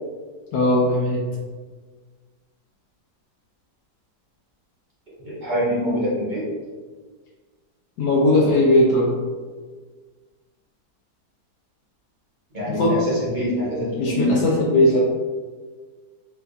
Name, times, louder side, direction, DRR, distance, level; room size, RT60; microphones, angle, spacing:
voice 1, 0.5-1.2 8.0-9.1 12.7-12.9 14.0-15.0, left 1 dB, 80° left, -5 dB, 1.2 m, -18 dB
voice 2, 5.2-6.5 12.5-14.4 14.9-15.0, left 1 dB, 35° right, -7 dB, 0.9 m, -24 dB
4.4 x 2.3 x 2.6 m, 1.4 s
omnidirectional pair, 1.8 m